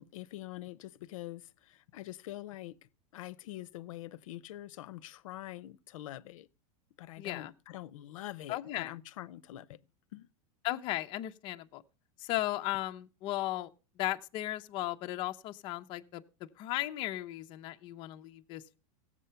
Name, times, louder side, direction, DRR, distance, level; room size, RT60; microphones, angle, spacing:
voice 1, 0.0-6.5 7.0-9.8 10.1-10.3, left 15 dB, 70° left, 0.6 m, -45 dB
voice 2, 7.2-7.5 8.5-8.9 10.6-11.8 12.2-13.7 14.0-16.2 16.6-18.8, left 16 dB, 30° left, 0.6 m, -36 dB
16.5 x 7.5 x 5.6 m
supercardioid pair, 170°, 17 cm